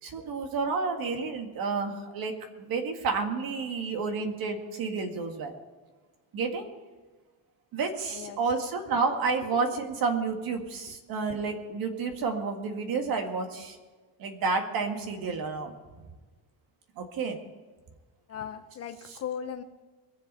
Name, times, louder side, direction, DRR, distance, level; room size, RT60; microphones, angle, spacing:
voice 1, 0.0-5.5 6.3-6.7 7.7-13.8 14.2-15.7 17.0-17.4, right 4 dB, 55° right, 5 dB, 2.0 m, -30 dB
voice 2, 18.3-19.6, left 8 dB, 35° left, 9 dB, 0.7 m, -38 dB
22.0 x 7.9 x 5.5 m, 1.3 s
cardioid pair, 160°, 43 cm